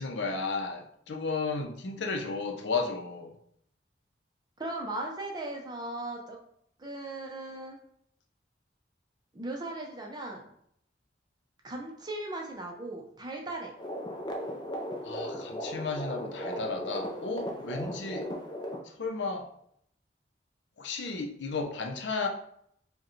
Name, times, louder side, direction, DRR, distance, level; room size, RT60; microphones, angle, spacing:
voice 1, 0.0-3.3 15.0-18.3 19.0-19.5 20.8-22.3, left 4 dB, 85° left, 3 dB, 0.6 m, -33 dB
voice 2, 4.6-6.4 6.8-7.8 9.3-10.4 11.6-13.7, right 2 dB, 25° right, 1 dB, 0.6 m, -37 dB
sound 1, 13.8-18.8, equal, 25° left, 0.4 m, -37 dB
4.6 x 2.2 x 3.1 m, 0.69 s
head